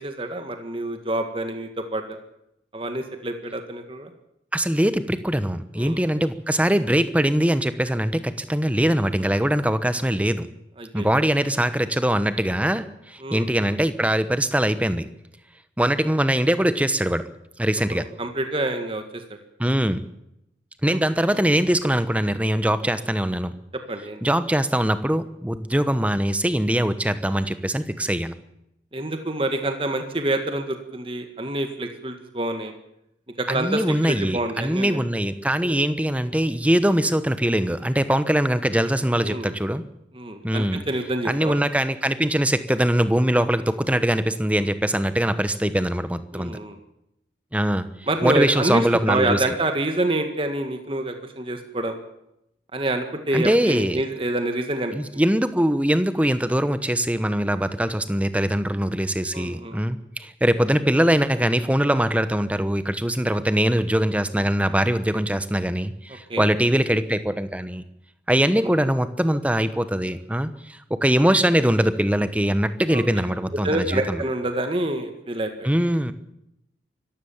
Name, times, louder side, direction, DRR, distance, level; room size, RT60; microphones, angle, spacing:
voice 1, 0.0-2.0 2.7-4.1 5.8-6.0 10.8-11.1 13.2-13.5 17.9-19.2 20.9-21.0 21.3-21.4 23.9-24.2 28.9-32.7 33.4-35.0 35.6-35.8 39.2-39.5 40.1-41.6 46.3-46.8 48.1-52.0 52.7-55.2 59.3-59.8 66.3-66.5 68.6-68.7 72.9-73.0 73.6-75.7, right 1 dB, 30° right, 6 dB, 1.8 m, -27 dB
voice 2, 4.5-10.5 10.9-15.1 15.8-17.2 17.6-18.1 19.6-20.0 20.8-23.5 24.2-28.3 33.5-39.8 40.4-40.8 41.2-46.5 47.5-47.9 48.2-49.4 53.3-54.0 54.9-67.8 68.3-74.2 75.6-76.1, right 1 dB, 10° right, 12 dB, 1.0 m, -22 dB
24.5 x 14.5 x 7.3 m, 0.82 s
head